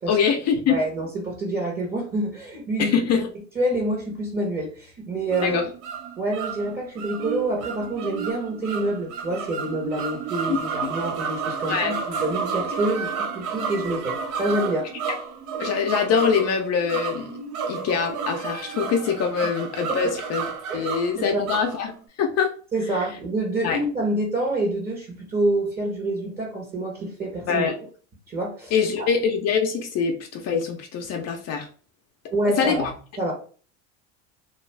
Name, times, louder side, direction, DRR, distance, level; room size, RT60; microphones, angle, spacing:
voice 1, 0.1-0.8 2.8-3.3 5.4-5.7 10.5-10.9 11.7-11.9 15.6-17.4 17.7-20.5 20.7-21.9 22.2-22.5 23.6-23.8 27.5-27.8 28.7-31.7 32.6-32.8, left 6 dB, 45° left, 3 dB, 0.6 m, -24 dB
voice 2, 0.7-2.9 3.5-5.6 6.2-14.9 19.9-20.0 20.7-20.9 21.2-21.4 22.7-27.6 28.3-28.7 29.0-29.1 32.3-32.9 33.2-33.3, right 1 dB, 25° right, 0 dB, 0.9 m, -27 dB
sound 1, 5.3-22.0, right 6 dB, 55° right, 0.6 m, -31 dB
2.4 x 2.3 x 3.2 m, 0.41 s
supercardioid pair, 105°, 37 cm